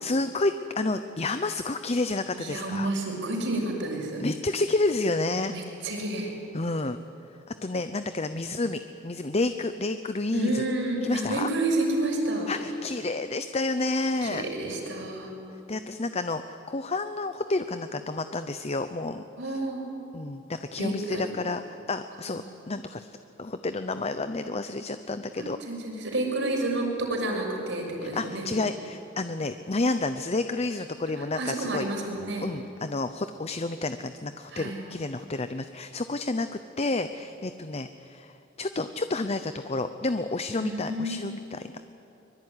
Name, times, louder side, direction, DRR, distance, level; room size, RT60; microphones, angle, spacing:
voice 1, 0.0-2.9 4.2-5.5 6.5-7.0 7.6-10.6 11.0-11.5 12.5-14.4 15.7-19.2 20.1-23.1 23.4-25.6 28.0-31.9 32.4-41.9, left 2 dB, 30° left, 10 dB, 0.8 m, -30 dB
voice 2, 2.3-4.2 5.5-6.3 10.3-12.5 14.2-15.3 19.4-19.8 20.8-21.2 22.3-22.4 25.4-28.4 31.2-32.5 34.5-34.8 40.6-41.2, right 2 dB, 65° right, 1 dB, 6.4 m, -30 dB
24.0 x 22.5 x 9.8 m, 2.8 s
head